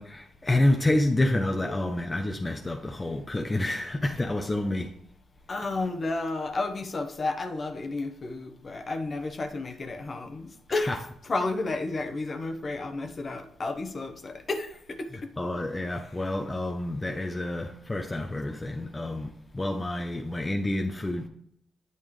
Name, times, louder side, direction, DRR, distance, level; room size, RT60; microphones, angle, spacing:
voice 1, 0.0-4.9 10.7-11.0 15.4-21.3, left 1 dB, 20° left, 0.7 m, -28 dB
voice 2, 5.5-15.1, left 3 dB, 40° left, 1.0 m, -32 dB
8.8 x 5.4 x 3.2 m
supercardioid pair, 60°, 0 cm